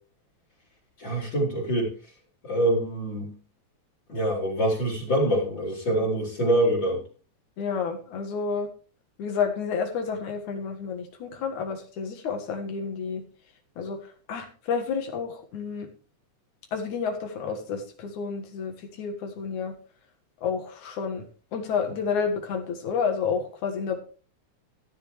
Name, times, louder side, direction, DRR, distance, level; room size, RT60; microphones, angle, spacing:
voice 1, 1.0-1.9 2.4-3.4 4.1-7.0, right 1 dB, 40° left, -1 dB, 3.8 m, -25 dB
voice 2, 7.6-8.7 9.2-13.2 13.8-14.0 14.3-15.9 16.7-19.7 20.4-21.2 21.5-24.0, left 6 dB, 80° left, 4 dB, 3.1 m, -30 dB
14.5 x 10.5 x 3.2 m, 0.38 s
omnidirectional pair, 3.4 m